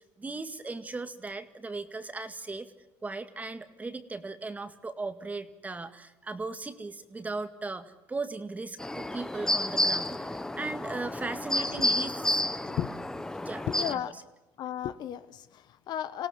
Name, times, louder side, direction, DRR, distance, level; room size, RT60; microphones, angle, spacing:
voice 1, 0.0-2.7 3.0-12.4 13.5-14.0, right 3 dB, 15° right, 9 dB, 2.0 m, -38 dB
sound 1, 8.8-13.9, left 1 dB, 5° left, 0.9 m, -30 dB
voice 2, 11.6-11.9 12.6-12.9 13.7-14.1 14.6-16.3, left 11 dB, 55° left, 12 dB, 1.1 m, -34 dB
27.0 x 17.5 x 7.4 m, 1.0 s
supercardioid pair, 110°, 9 cm